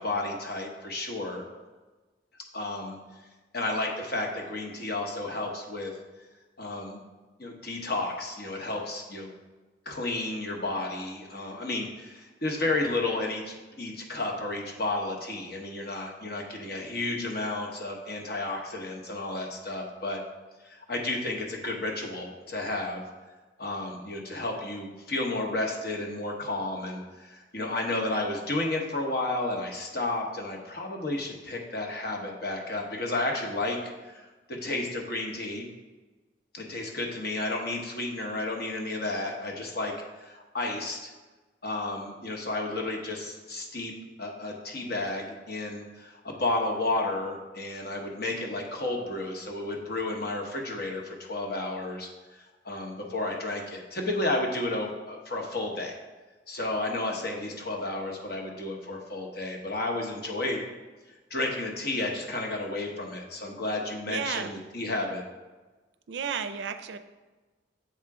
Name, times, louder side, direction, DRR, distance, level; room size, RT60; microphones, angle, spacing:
voice 1, 0.0-1.4 2.5-3.0 3.5-5.9 6.6-7.0 7.4-9.3 9.8-20.2 20.6-23.0 23.6-33.8 34.0-35.7 36.5-41.1 41.6-43.9 44.2-56.0 56.5-60.6 61.3-65.2, left 2 dB, 55° left, 1 dB, 1.1 m, -32 dB
voice 2, 64.0-64.5 66.1-67.0, right 7 dB, 70° right, 9 dB, 0.4 m, -32 dB
7.2 x 3.7 x 4.7 m, 1.2 s
head